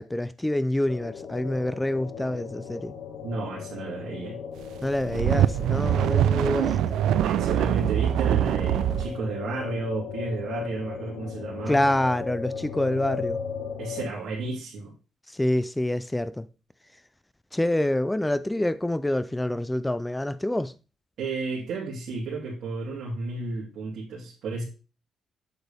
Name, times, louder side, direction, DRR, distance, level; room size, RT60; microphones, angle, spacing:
voice 1, 0.0-3.0 4.8-6.9 11.7-13.4 15.3-16.5 17.5-20.7, left 1 dB, 5° left, 0.3 m, -26 dB
sound 1, 0.9-14.1, left 6 dB, 60° left, 1.4 m, -37 dB
voice 2, 3.2-4.4 7.2-11.8 13.8-14.9 21.2-24.6, right 3 dB, 70° right, 2.6 m, -32 dB
sound 2, 4.8-9.1, right 11 dB, 90° right, 0.3 m, -23 dB
8.1 x 6.5 x 3.4 m
cardioid pair, 155°, 0 cm